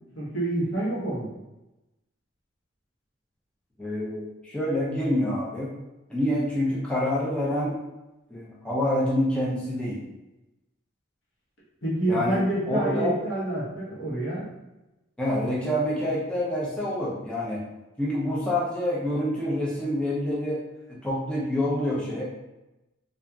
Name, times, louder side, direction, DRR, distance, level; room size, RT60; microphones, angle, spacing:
voice 1, 0.1-1.3 11.8-14.5, right 1 dB, 65° left, -6 dB, 1.0 m, -27 dB
voice 2, 3.8-5.7 6.1-7.7 8.3-10.0 12.1-12.4 12.7-13.1 15.2-17.6 18.0-20.6 20.9-22.2, left 1 dB, 5° left, -7 dB, 0.5 m, -27 dB
2.7 x 2.4 x 2.3 m, 1.0 s
head